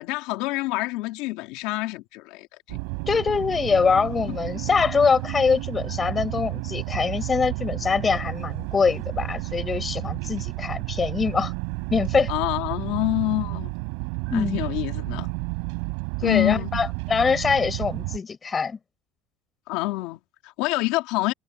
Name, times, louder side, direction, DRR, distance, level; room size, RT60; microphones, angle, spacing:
voice 1, 0.0-2.8 4.3-4.4 12.3-13.7 14.3-15.3 16.2-16.7 19.7-21.3, left 20 dB, 65° left, 2.9 m, -27 dB
sound 1, 2.7-18.2, right 38 dB, 75° right, 4.5 m, -31 dB
voice 2, 3.1-11.5 11.9-12.3 14.3-14.6 16.2-18.8, left 5 dB, 15° left, 4.8 m, -23 dB
cardioid pair, 170°, 0 cm